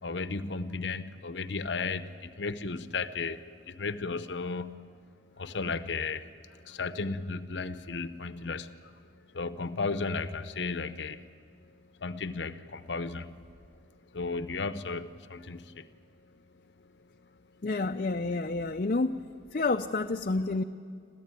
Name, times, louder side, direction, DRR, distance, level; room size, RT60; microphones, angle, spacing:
voice 1, 0.0-5.0 5.4-11.2 12.0-13.3 14.1-15.9, left 4 dB, 80° left, 12 dB, 0.9 m, -35 dB
voice 2, 17.6-19.3 19.5-20.6, left 3 dB, 50° left, 4 dB, 0.6 m, -29 dB
27.5 x 14.5 x 9.0 m, 2.3 s
head